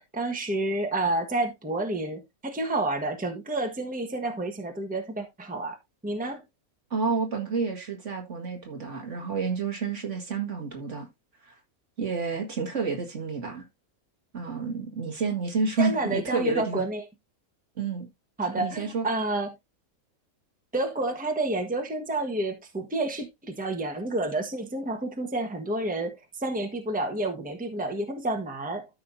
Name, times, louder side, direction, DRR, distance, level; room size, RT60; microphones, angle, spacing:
voice 1, 0.0-5.7 6.0-6.4 15.8-17.0 18.4-19.5 20.7-28.9, right 2 dB, 5° right, 1.3 m, -29 dB
voice 2, 6.9-11.1 11.4-11.5 12.0-13.6 14.3-16.8 17.8-18.1 18.5-19.1, right 4 dB, 55° right, 2.2 m, -29 dB
13.0 x 5.7 x 2.7 m
omnidirectional pair, 1.5 m